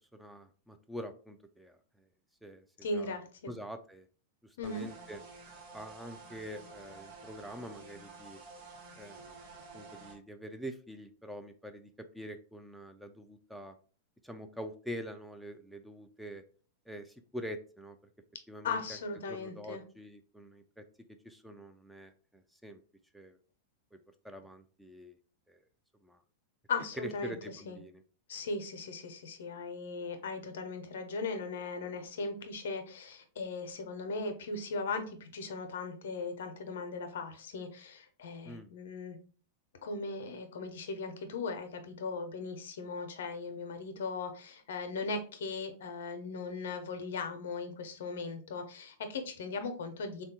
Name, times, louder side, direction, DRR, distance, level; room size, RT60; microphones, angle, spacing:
voice 1, 0.1-1.8 2.4-2.6 2.9-3.2 3.5-4.1 4.4-5.2 5.7-8.4 9.0-9.4 9.7-11.9 12.1-13.7 14.2-16.4 16.9-18.0 18.5-19.0 19.3-20.8 21.2-22.8 23.1-23.4 24.2-25.2 25.5-25.6 26.0-26.2 27.0-28.0 38.4-38.7, equal, ahead, 7 dB, 0.3 m, -45 dB
voice 2, 2.8-3.5 4.6-4.9 18.6-19.8 26.7-27.3 27.7-27.8 28.3-39.2 39.8-50.2, left 3 dB, 75° left, 7 dB, 0.5 m, -38 dB
sound 1, 4.6-10.2, right 4 dB, 55° right, 1.1 m, -51 dB
3.3 x 2.2 x 2.7 m, 0.41 s
hypercardioid pair, 105°, 0 cm